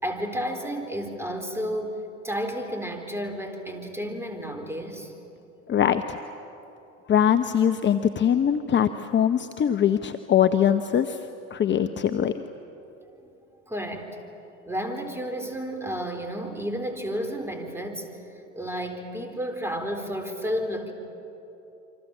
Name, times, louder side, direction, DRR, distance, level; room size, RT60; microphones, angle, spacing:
voice 1, 0.0-5.1 13.2-13.3 13.7-14.2 14.7-18.1 18.5-20.9, equal, 5° right, 5 dB, 4.1 m, -31 dB
voice 2, 5.7-6.2 7.1-11.2 11.5-12.4, left 9 dB, 30° left, 9 dB, 0.9 m, -22 dB
28.0 x 25.0 x 7.3 m, 2.9 s
hypercardioid pair, 75°, 38 cm